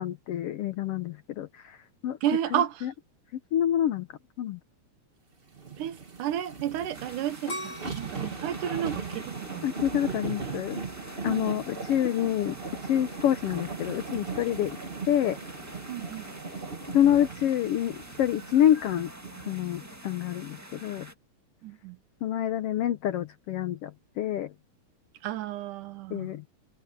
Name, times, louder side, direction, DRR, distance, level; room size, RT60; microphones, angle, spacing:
voice 1, 0.0-1.8 2.0-2.2 2.5-2.9 3.5-4.1 4.4-4.6 9.6-10.8 11.2-12.6 12.8-14.8 15.1-15.4 16.9-19.1 19.5-21.1 22.2-24.5 26.1-26.4, left 11 dB, 85° left, 1.3 m, -27 dB
voice 2, 2.2-2.9 5.8-9.7 11.3-11.5 15.9-16.3 21.6-22.0 25.2-26.3, right 11 dB, 75° right, 2.5 m, -32 dB
sound 1, 5.5-20.0 20.4-20.5, right 4 dB, 55° right, 0.6 m, -39 dB
sound 2, 6.9-21.1, right 1 dB, 10° right, 1.1 m, -46 dB
sound 3, 7.5-10.4 10.9-11.4, left 1 dB, 40° left, 5.9 m, -41 dB
omnidirectional pair, 3.8 m